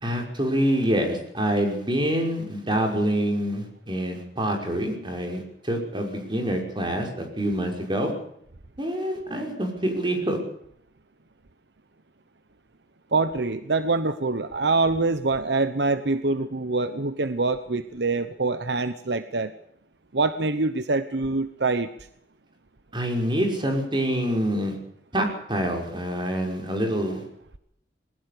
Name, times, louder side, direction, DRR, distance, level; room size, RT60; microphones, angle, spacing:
voice 1, 0.0-8.1 8.8-10.4 22.9-24.8 25.1-27.2, equal, 30° right, 3 dB, 5.7 m, -26 dB
voice 2, 13.1-19.5 20.1-21.9, right 3 dB, 75° right, 12 dB, 1.1 m, -25 dB
21.0 x 19.0 x 6.9 m, 0.71 s
head